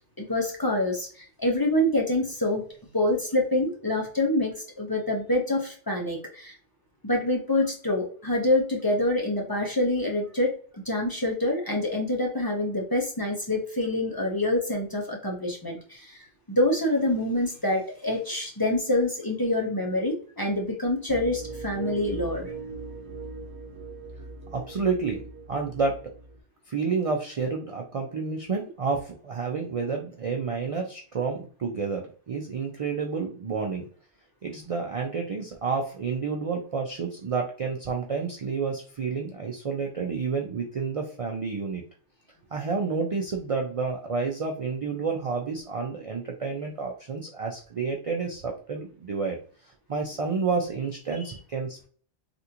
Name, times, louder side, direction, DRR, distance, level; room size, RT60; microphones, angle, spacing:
voice 1, 0.2-2.6 2.9-6.6 7.0-10.6 10.9-22.5, left 1 dB, 25° left, 0 dB, 0.7 m, -26 dB
sound 1, 21.1-26.4, right 3 dB, 85° right, 0.9 m, -40 dB
voice 2, 24.5-26.0 26.7-33.9 34.4-41.8 42.5-49.4 49.9-51.9, right 4 dB, 50° right, 1 dB, 0.4 m, -30 dB
3.4 x 2.5 x 2.8 m, 0.43 s
omnidirectional pair, 1.1 m